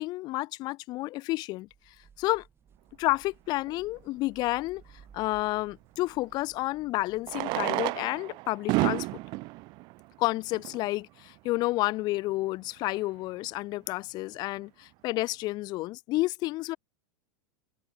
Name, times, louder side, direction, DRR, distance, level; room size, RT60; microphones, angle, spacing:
voice 1, 0.0-1.7 2.2-2.4 3.0-4.8 5.1-9.1 10.2-16.8, left 19 dB, 40° left, 0.6 m, -30 dB
sound 1, 1.7-7.7, right 7 dB, 20° right, 5.0 m, -58 dB
Fireworks, 3.7-3.8 6.0-6.1 7.2-10.9 11.7-11.8 12.0-12.1 12.3-12.4 12.9-13.2, right 24 dB, 40° right, 0.4 m, -31 dB
supercardioid pair, 130°, 11 cm